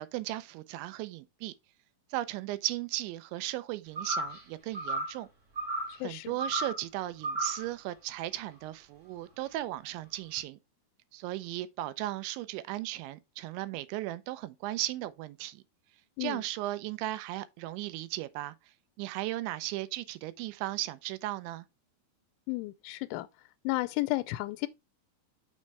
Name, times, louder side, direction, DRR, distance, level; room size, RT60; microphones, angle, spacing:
voice 1, 0.0-1.5 2.1-5.3 6.0-10.6 11.1-15.6 16.2-18.6 19.0-21.7, right 16 dB, 85° right, 2.9 m, -36 dB
sound 1, 4.0-4.4 4.7-5.2 5.6-6.0 6.4-6.8 7.2-7.7, right 1 dB, 25° right, 2.1 m, -33 dB
voice 2, 6.0-6.4 16.2-16.4 22.5-23.3 23.6-24.7, left 20 dB, 90° left, 3.0 m, -32 dB
6.4 x 5.4 x 4.6 m
omnidirectional pair, 5.3 m